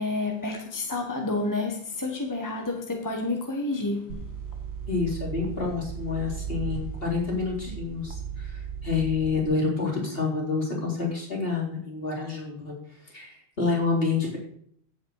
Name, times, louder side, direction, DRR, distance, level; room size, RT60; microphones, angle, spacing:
voice 1, 0.0-4.3, left 2 dB, 20° left, 1.6 m, -29 dB
sound 1, 4.1-9.4, right 7 dB, 70° right, 1.7 m, -36 dB
voice 2, 4.9-12.7 13.0-14.4, left 4 dB, 60° left, 4.6 m, -28 dB
15.5 x 8.3 x 4.9 m
omnidirectional pair, 1.1 m